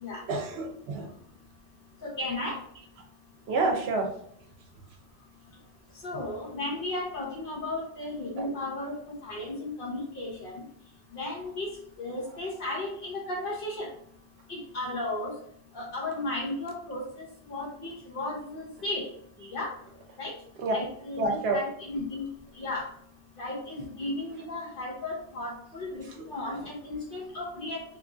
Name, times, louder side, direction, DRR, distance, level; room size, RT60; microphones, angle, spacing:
voice 1, 0.3-1.1 3.5-4.1 8.4-8.5 20.6-20.7 21.2-21.6, right 3 dB, 70° right, 2 dB, 0.8 m, -28 dB
voice 2, 2.0-2.6 6.0-10.5 11.1-11.7 12.0-13.9 14.5-15.3 15.7-19.1 19.5-19.7 20.2-20.3 20.7-22.3 22.6-22.9 23.4-27.8, left 2 dB, 55° left, -3 dB, 1.0 m, -35 dB
2.9 x 2.5 x 2.4 m, 0.68 s
omnidirectional pair, 1.1 m